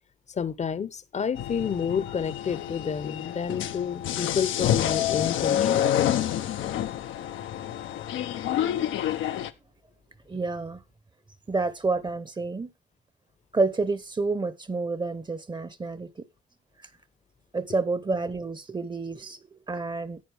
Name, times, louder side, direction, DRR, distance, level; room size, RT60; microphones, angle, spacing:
voice 1, 0.4-5.9, left 7 dB, 35° left, 0.8 m, -30 dB
sound 1, 1.3-9.5, left 11 dB, 80° left, 0.8 m, -28 dB
voice 2, 10.3-10.8 11.5-12.7 13.5-16.1 17.5-19.4 19.7-20.2, right 3 dB, 20° right, 0.9 m, -29 dB
10.5 x 8.8 x 3.4 m
cardioid pair, 90°, 20 cm